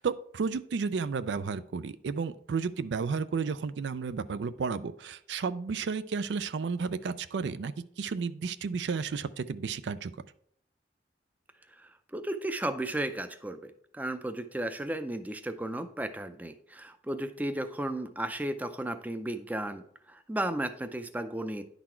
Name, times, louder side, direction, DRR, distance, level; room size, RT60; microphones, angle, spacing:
voice 1, 0.0-10.1, right 5 dB, 80° right, 14 dB, 0.4 m, -32 dB
voice 2, 11.7-21.6, right 1 dB, 10° right, 9 dB, 0.4 m, -34 dB
10.5 x 4.1 x 4.4 m, 0.66 s
head